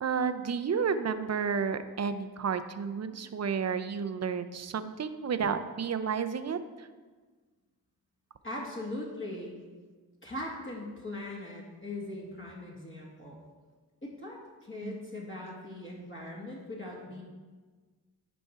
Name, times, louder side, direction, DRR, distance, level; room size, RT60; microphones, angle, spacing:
voice 1, 0.0-6.9 14.8-15.0, right 6 dB, 45° right, 11 dB, 0.6 m, -31 dB
voice 2, 8.4-9.5 10.2-13.4 14.0-17.2, left 1 dB, 30° left, -4 dB, 1.9 m, -40 dB
10.0 x 4.3 x 4.6 m, 1.4 s
cardioid pair, 55°, 38 cm